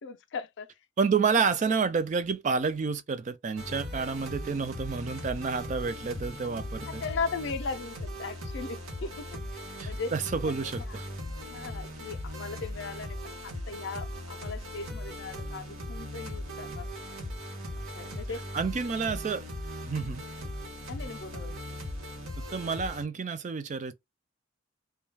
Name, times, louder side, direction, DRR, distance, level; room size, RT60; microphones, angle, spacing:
voice 1, 0.0-0.8 1.3-1.4 6.8-10.1 10.4-11.0 11.5-16.9 17.8-18.4 19.1-19.2 19.9-20.2 20.9-21.6, left 4 dB, 55° left, 0.4 m, -38 dB
voice 2, 1.0-7.0 9.8-11.1 18.5-19.4 19.8-20.2 22.4-23.9, right 5 dB, 35° right, 0.3 m, -29 dB
sound 1, 3.6-23.0, equal, 90° right, 0.9 m, -39 dB
2.3 x 2.2 x 3.1 m
head